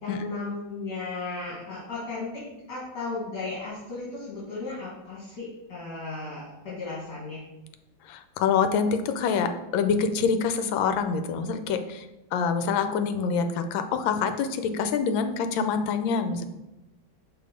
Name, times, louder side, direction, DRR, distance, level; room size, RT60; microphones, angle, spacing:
voice 1, 0.0-7.5, left 3 dB, 55° left, -8 dB, 2.2 m, -35 dB
voice 2, 8.0-12.1 12.3-16.4, left 6 dB, 80° left, 8 dB, 1.3 m, -26 dB
5.9 x 3.3 x 5.1 m, 0.97 s
omnidirectional pair, 2.2 m